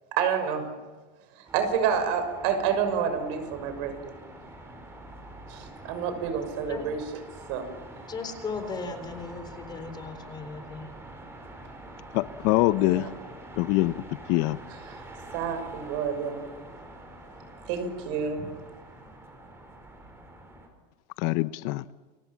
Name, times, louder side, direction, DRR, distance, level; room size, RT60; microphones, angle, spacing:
voice 1, 0.2-0.7 1.5-4.1 5.5-7.0 7.5-7.7 12.8-13.1 15.3-16.5 17.7-18.5, right 7 dB, 60° right, 6.3 m, -28 dB
sound 1, 1.5-20.7, right 1 dB, 10° right, 4.8 m, -46 dB
voice 2, 8.1-10.9, left 4 dB, 20° left, 3.9 m, -36 dB
voice 3, 12.1-13.1 13.6-13.9 14.3-14.6 21.2-21.8, left 18 dB, 60° left, 0.8 m, -24 dB
30.0 x 24.0 x 7.5 m
cardioid pair, 165°, 21 cm